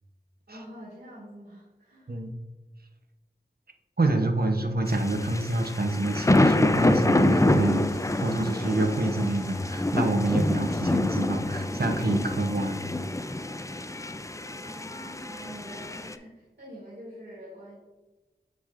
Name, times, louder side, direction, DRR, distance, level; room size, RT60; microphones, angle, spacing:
voice 1, 0.5-2.2 14.6-17.8, equal, 75° right, -7 dB, 2.1 m, -46 dB
voice 2, 4.0-7.9 8.2-12.8, right 2 dB, 60° right, 4 dB, 0.8 m, -27 dB
sound 1, 4.9-16.1, left 2 dB, 15° left, 0.4 m, -27 dB
sound 2, 5.6-16.0, left 1 dB, 15° right, 2.0 m, -50 dB
7.4 x 6.2 x 2.5 m, 1.2 s
wide cardioid pair, 40°, 18 cm